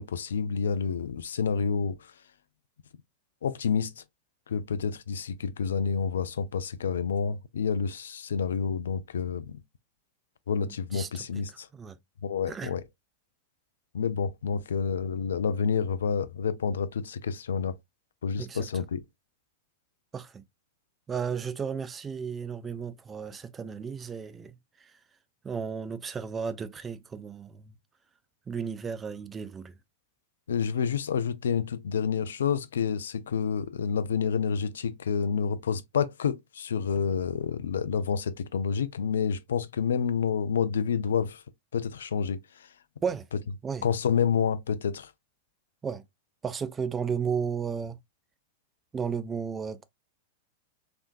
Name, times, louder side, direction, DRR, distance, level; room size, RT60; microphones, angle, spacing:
voice 1, 0.0-2.0 3.4-3.9 4.5-9.6 10.5-11.7 12.2-12.8 13.9-17.8 18.2-19.0 30.5-41.4 41.7-42.4 43.8-45.1, left 6 dB, 65° left, 0.3 m, -29 dB
voice 2, 10.6-11.2 11.7-12.0 12.5-12.7 18.4-18.8 20.1-20.4 21.1-24.9 25.4-27.7 28.5-29.7 43.0-43.2 43.6-43.9 45.8-46.0 46.4-48.0 48.9-49.8, right 6 dB, 20° right, 0.4 m, -34 dB
3.4 x 2.7 x 2.4 m
figure-of-eight pair, 95°, 0 cm